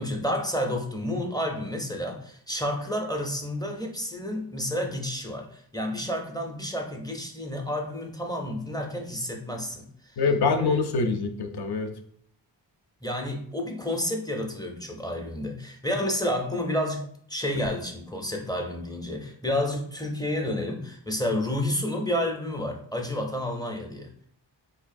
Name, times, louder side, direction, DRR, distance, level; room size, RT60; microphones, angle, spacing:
voice 1, 0.0-9.9 10.5-10.8 13.0-24.3, left 1 dB, 10° left, 1 dB, 0.4 m, -30 dB
voice 2, 10.2-11.9, left 4 dB, 60° left, 7 dB, 0.5 m, -24 dB
3.8 x 2.6 x 2.6 m, 0.63 s
wide cardioid pair, 105°, 45 cm